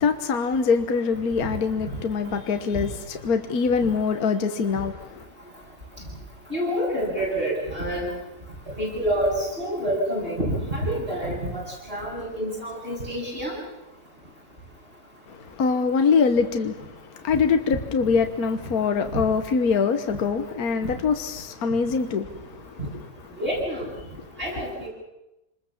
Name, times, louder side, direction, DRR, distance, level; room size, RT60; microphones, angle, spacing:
voice 1, 0.0-5.2 15.3-16.8 17.2-22.7, left 5 dB, 60° left, 1.7 m, -24 dB
voice 2, 6.5-8.1 8.8-11.6 11.9-13.6 19.1-19.2 23.4-23.9 24.4-24.9, equal, 30° right, 8.4 m, -27 dB
27.0 x 21.0 x 7.3 m
omnidirectional pair, 1.9 m